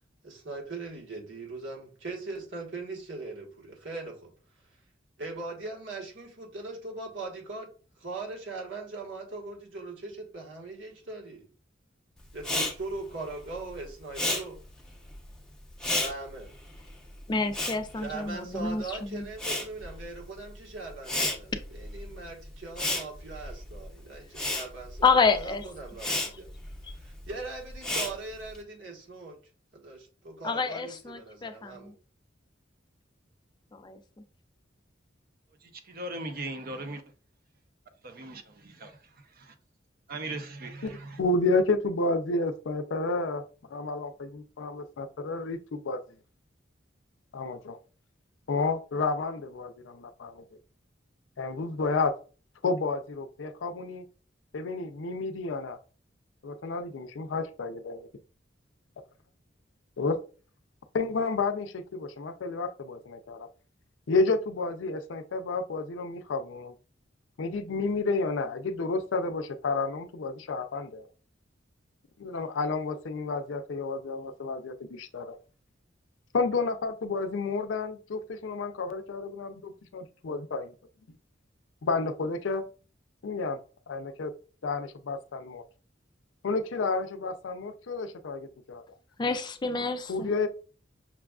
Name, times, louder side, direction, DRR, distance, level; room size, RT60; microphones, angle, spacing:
voice 1, 0.2-4.3 5.2-7.7 8.0-11.5 12.3-14.6 16.0-16.5 18.0-26.5 26.9-29.4 29.7-31.9, right 3 dB, 80° right, 1.3 m, -40 dB
Respiratory sounds, 12.4-18.8 19.1-28.6, left 1 dB, 5° left, 0.7 m, -33 dB
voice 2, 17.3-19.3 25.0-25.6 30.4-31.9 33.7-34.0 89.2-90.3, left 4 dB, 25° left, 0.4 m, -28 dB
voice 3, 35.8-37.0 38.0-39.0 39.4-39.5 40.1-41.2, right 2 dB, 50° right, 0.6 m, -38 dB
voice 4, 40.8-43.4 43.7-46.0 47.3-47.8 48.5-50.4 51.4-52.1 52.6-54.0 54.5-55.8 56.4-58.1 60.0-60.2 60.9-63.5 64.1-66.7 67.4-71.1 72.2-75.4 76.3-80.7 81.1-81.2 81.8-82.6 83.2-83.6 83.9-84.3 84.6-85.6 86.4-88.8 90.1-90.5, left 3 dB, 85° left, 0.5 m, -30 dB
5.9 x 2.3 x 2.3 m
head